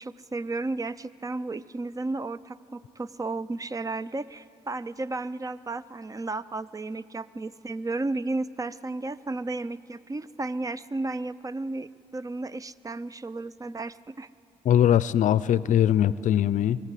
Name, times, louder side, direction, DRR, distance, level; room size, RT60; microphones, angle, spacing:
voice 1, 0.0-14.3, right 2 dB, 25° right, 17 dB, 0.5 m, -33 dB
voice 2, 14.7-16.8, left 10 dB, 65° left, 18 dB, 0.5 m, -21 dB
22.0 x 14.5 x 8.3 m, 2.7 s
supercardioid pair, 60°, 14 cm